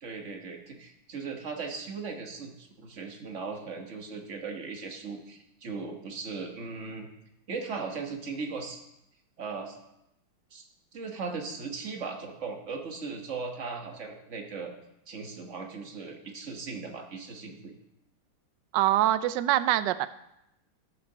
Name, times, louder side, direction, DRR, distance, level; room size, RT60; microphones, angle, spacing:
voice 1, 0.0-7.1 7.5-8.8 9.4-9.8 10.5-10.6 10.9-14.7 15.1-17.7, right 4 dB, 40° right, 4 dB, 1.3 m, -38 dB
voice 2, 18.7-20.1, right 13 dB, 75° right, 14 dB, 1.0 m, -24 dB
12.5 x 6.6 x 6.7 m, 0.85 s
omnidirectional pair, 2.4 m